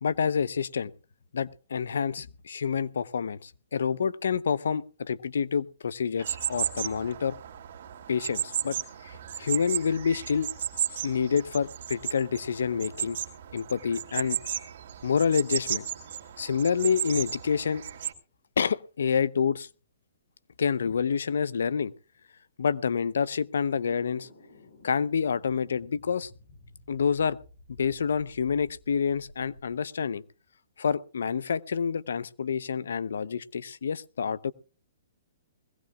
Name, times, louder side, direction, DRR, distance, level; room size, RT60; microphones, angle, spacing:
voice 1, 0.0-0.9 1.3-7.4 8.1-8.8 9.0-10.5 11.0-13.2 13.5-14.4 15.0-15.9 16.4-17.8 18.6-19.7 20.6-21.9 22.6-24.3 24.8-26.3 26.9-27.4 27.7-30.2 30.8-34.5, left 6 dB, 85° left, 19 dB, 0.7 m, -28 dB
sound 1, 6.2-18.1, right 9 dB, 60° right, 2.2 m, -34 dB
sound 2, 23.7-29.8, left 2 dB, 65° left, 4.8 m, -53 dB
21.5 x 16.5 x 2.3 m, 0.37 s
hypercardioid pair, 155°, 0 cm